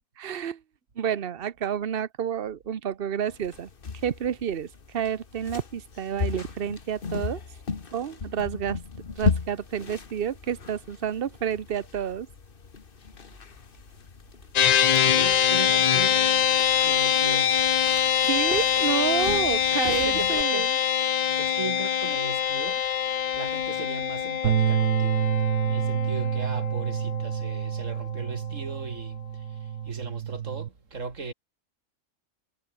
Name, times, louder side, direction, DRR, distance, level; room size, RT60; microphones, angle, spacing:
voice 1, 0.2-0.6 1.0-3.7 4.0-7.4 7.9-8.8 9.2-12.3 18.2-20.7, right 9 dB, 45° right, 1.1 m, -29 dB
sound 1, 3.3-20.4, left 5 dB, 40° left, 1.6 m, -36 dB
sound 2, 14.6-28.1, left 9 dB, 80° left, 0.3 m, -24 dB
voice 2, 15.0-16.5 16.8-17.7 19.8-20.8 21.4-22.9 23.3-25.3 25.6-31.3, right 4 dB, 65° right, 3.3 m, -37 dB
Bass guitar, 24.4-30.7, right 10 dB, 80° right, 1.3 m, -28 dB
omnidirectional pair, 1.4 m